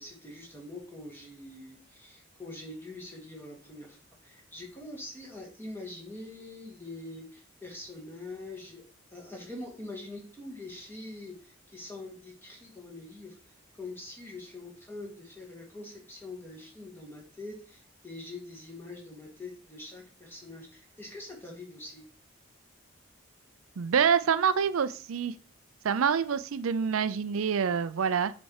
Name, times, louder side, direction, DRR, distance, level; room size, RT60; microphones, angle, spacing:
voice 1, 0.0-4.0 4.2-8.8 9.1-13.3 13.7-22.1, left 2 dB, 10° left, -1 dB, 2.2 m, -44 dB
voice 2, 23.8-25.3 25.8-28.3, right 7 dB, 90° right, 13 dB, 0.5 m, -26 dB
7.2 x 4.3 x 4.8 m, 0.40 s
head